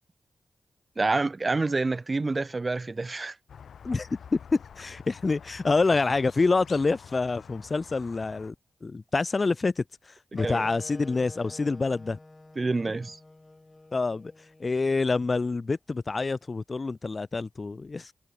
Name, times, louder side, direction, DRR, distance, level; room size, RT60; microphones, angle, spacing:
voice 1, 1.0-3.3 10.4-10.6 12.6-13.2, right 3 dB, 40° right, 1.3 m, -27 dB
Squeak, 3.5-8.5, left 7 dB, 80° left, 3.3 m, -48 dB
voice 2, 3.8-8.5 8.8-9.8 10.3-12.2 13.9-14.3 14.6-18.1, left 3 dB, 45° left, 0.6 m, -27 dB
sound 1, 10.4-15.5, left 2 dB, 30° left, 1.6 m, -48 dB
cardioid pair, 45°, 0 cm